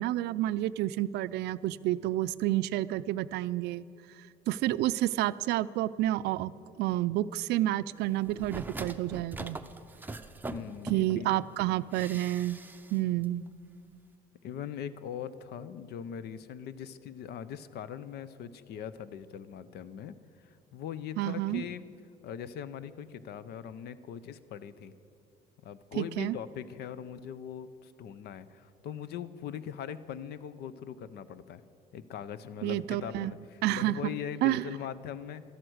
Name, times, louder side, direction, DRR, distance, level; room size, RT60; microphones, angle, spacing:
voice 1, 0.0-3.8 4.5-6.5 6.8-9.6 10.9-12.6 12.9-13.4 21.2-21.6 26.0-26.4 32.6-33.3 33.6-34.1 34.4-34.6, right 15 dB, 80° right, 16 dB, 0.4 m, -29 dB
sound 1, 8.3-11.3 11.9-13.0 13.2-13.3, right 2 dB, 10° right, 0.6 m, -41 dB
voice 2, 10.5-11.5 14.4-21.8 22.2-24.9 25.6-31.6 31.9-35.4, left 8 dB, 70° left, 15 dB, 0.7 m, -41 dB
12.5 x 11.0 x 7.9 m, 2.5 s
cardioid pair, 110°, 17 cm